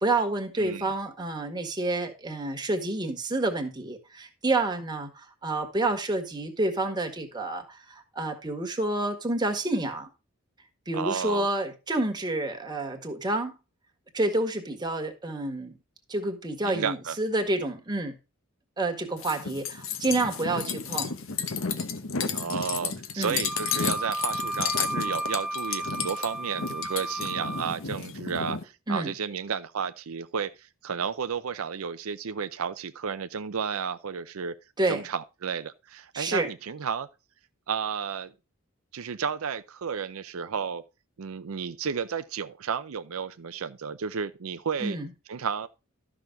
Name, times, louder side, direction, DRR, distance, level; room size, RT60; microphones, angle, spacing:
voice 1, 0.0-10.1 10.9-13.6 14.1-15.8 16.1-18.2 18.8-21.1 23.2-23.4 28.9-29.1 34.8-35.0 36.1-36.5 44.8-45.1, right 2 dB, 20° right, 1.7 m, -29 dB
voice 2, 10.9-11.5 16.6-17.2 22.3-34.5 34.9-37.1 37.7-38.3 38.9-40.8 41.2-45.0 45.3-45.7, right 6 dB, 85° right, 0.6 m, -32 dB
sound 1, 19.2-28.6, left 6 dB, 65° left, 1.1 m, -32 dB
Wind instrument woodwind instrument, 23.4-27.7, right 1 dB, ahead, 0.4 m, -33 dB
12.5 x 6.1 x 3.8 m
head